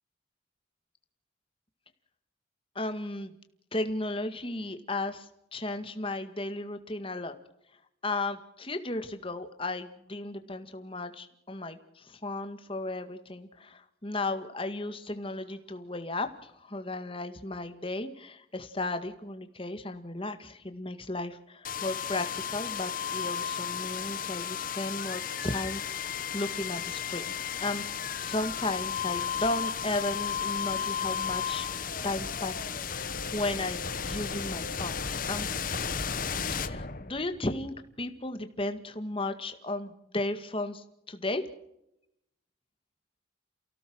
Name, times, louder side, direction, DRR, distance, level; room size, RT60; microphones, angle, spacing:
voice 1, 2.8-3.3 3.7-7.3 8.0-27.3 27.6-31.7 32.0-33.0 33.3-35.5 36.6-41.4, left 2 dB, 25° left, 8 dB, 1.9 m, -35 dB
sound 1, 21.6-37.5, left 7 dB, 45° left, 1.2 m, -34 dB
29.0 x 17.0 x 6.3 m, 0.81 s
head